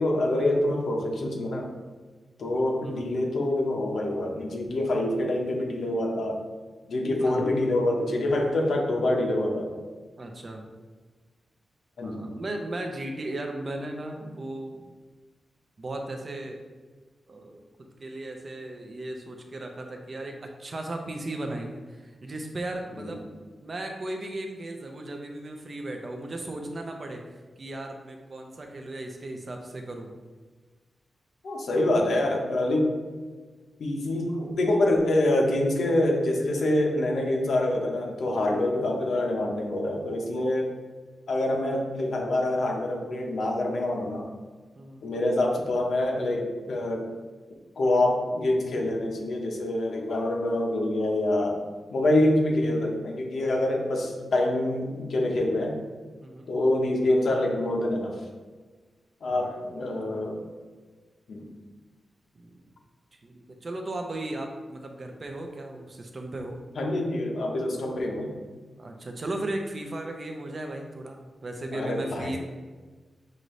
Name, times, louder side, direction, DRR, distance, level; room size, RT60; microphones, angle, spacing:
voice 1, 0.0-1.7 2.4-6.4 6.9-9.7 12.0-12.3 23.0-23.2 31.4-32.9 33.8-40.7 41.3-44.3 45.0-47.1 47.8-51.6 51.9-55.8 56.5-58.2 59.2-60.4 61.3-61.5 66.8-68.3 71.7-72.4, left 1 dB, 70° left, 1 dB, 0.8 m, -26 dB
voice 2, 7.2-7.5 10.2-10.7 12.0-14.9 15.8-16.6 17.3-30.2 38.4-38.6 44.8-45.0 56.2-56.5 59.3-59.8 60.0-60.3 62.3-62.7 63.2-66.6 68.8-72.4, right 1 dB, 35° right, 3 dB, 0.5 m, -36 dB
6.4 x 2.6 x 3.1 m, 1.4 s
wide cardioid pair, 145°, 0 cm